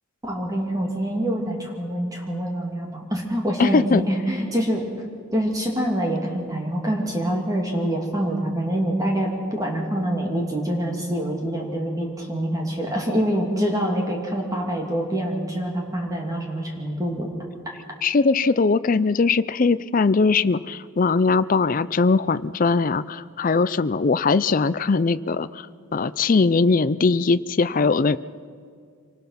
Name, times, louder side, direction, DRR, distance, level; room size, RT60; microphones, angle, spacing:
voice 1, 0.2-4.8 5.3-17.3, equal, 15° right, 0 dB, 2.7 m, -25 dB
voice 2, 3.6-4.0 18.0-25.7 25.9-28.2, left 4 dB, 40° left, 14 dB, 0.4 m, -20 dB
25.5 x 19.0 x 5.8 m, 2.2 s
head